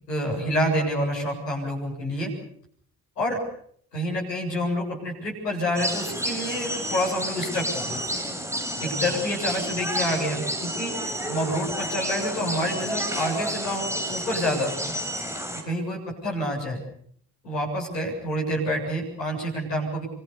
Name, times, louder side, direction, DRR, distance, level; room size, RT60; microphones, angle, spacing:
voice 1, 0.1-2.3 3.2-3.4 3.9-8.0 8.8-10.9 11.3-14.9 15.7-16.8 17.4-20.1, equal, 85° left, -2 dB, 7.6 m, -28 dB
sound 1, 5.8-15.6, equal, 5° right, 7.1 m, -30 dB
28.0 x 25.0 x 7.0 m, 0.63 s
figure-of-eight pair, 45°, 47 cm